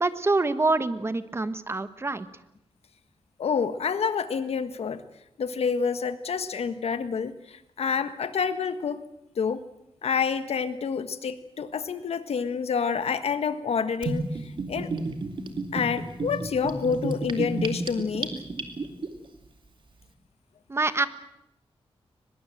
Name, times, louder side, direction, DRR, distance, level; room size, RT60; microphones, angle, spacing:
voice 1, 0.0-2.3 20.7-21.1, right 3 dB, 25° right, 12 dB, 1.2 m, -25 dB
voice 2, 3.4-5.0 5.4-9.0 9.4-9.6 10.0-14.2 14.7-14.9 15.7-18.3, left 6 dB, 85° left, 11 dB, 1.5 m, -28 dB
Gurgling / Bathtub (filling or washing), 14.0-19.1, right 3 dB, 55° right, 2.6 m, -31 dB
23.0 x 21.5 x 7.7 m, 0.82 s
wide cardioid pair, 140°, 10 cm